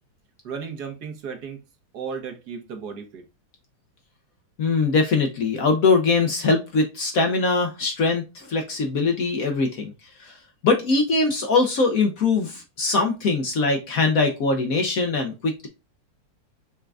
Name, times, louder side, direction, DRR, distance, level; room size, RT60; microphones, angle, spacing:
voice 1, 0.4-1.6 1.9-3.2, right 6 dB, 60° right, 1.5 m, -34 dB
voice 2, 4.6-9.9 10.2-15.7, left 3 dB, 60° left, 1.0 m, -22 dB
5.6 x 3.7 x 2.3 m
omnidirectional pair, 2.1 m